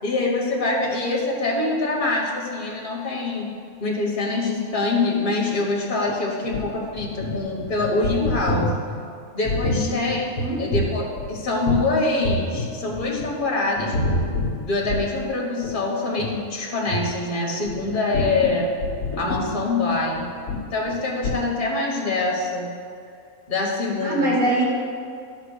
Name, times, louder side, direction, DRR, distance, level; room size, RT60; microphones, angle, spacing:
voice 1, 0.0-3.5 3.8-8.7 9.3-10.3 10.6-13.9 14.6-18.7 19.2-20.2 20.7-22.7 23.5-24.3, left 3 dB, 35° left, -2 dB, 1.6 m, -24 dB
sound 1, 6.1-12.0 12.2-13.4 13.8-15.3 15.6-15.8 16.1-16.3 16.9-17.1 17.6-21.0 21.2-21.4, left 1 dB, 75° left, 1.4 m, -27 dB
voice 2, 24.0-24.6, right 1 dB, 65° right, -5 dB, 2.7 m, -23 dB
11.0 x 4.1 x 6.4 m, 2.4 s
omnidirectional pair, 1.5 m